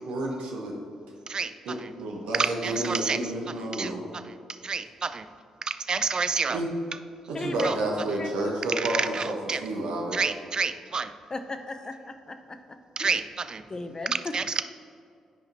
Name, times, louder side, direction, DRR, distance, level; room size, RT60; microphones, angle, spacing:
voice 1, 0.1-0.8 1.6-4.0 6.5-6.7 7.3-10.3, right 1 dB, 70° right, -1 dB, 1.0 m, -30 dB
voice 2, 2.3-3.2 3.7-3.9 4.6-5.2 5.7-6.6 7.6-7.8 8.8-9.6 10.1-11.1 13.0-13.6 14.1-14.6, right 5 dB, 40° right, 11 dB, 0.4 m, -29 dB
voice 3, 7.3-8.5 11.3-12.6 13.0-13.2 13.7-14.3, left 2 dB, 30° left, 8 dB, 0.6 m, -36 dB
11.0 x 5.1 x 2.7 m, 2.3 s
hypercardioid pair, 40°, 2 cm